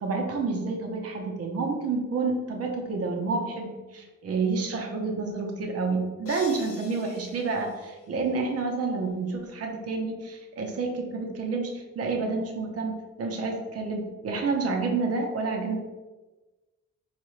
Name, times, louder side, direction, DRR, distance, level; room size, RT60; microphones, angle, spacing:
voice 1, 0.0-15.8, right 4 dB, 50° right, 2 dB, 0.8 m, -29 dB
sound 1, 6.3-8.6, left 5 dB, 45° left, 0.6 m, -47 dB
4.6 x 2.4 x 3.1 m, 1.2 s
cardioid pair, 120°, 31 cm